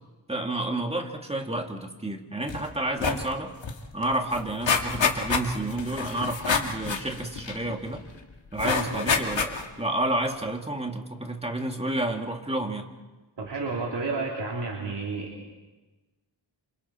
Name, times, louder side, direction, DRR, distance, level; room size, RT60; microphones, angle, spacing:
voice 1, 0.3-3.5 3.9-8.1 8.5-12.8, right 1 dB, 15° right, 3 dB, 2.2 m, -30 dB
sound 1, 2.5-2.7 2.9-3.3 3.6-3.7 4.0-8.0 8.6-9.8 10.3-10.4, left 5 dB, 75° left, 2.1 m, -27 dB
voice 2, 8.6-9.2 13.4-15.5, right 3 dB, 65° right, -3 dB, 3.6 m, -31 dB
28.5 x 27.0 x 4.5 m, 1.2 s
wide cardioid pair, 130°, 45 cm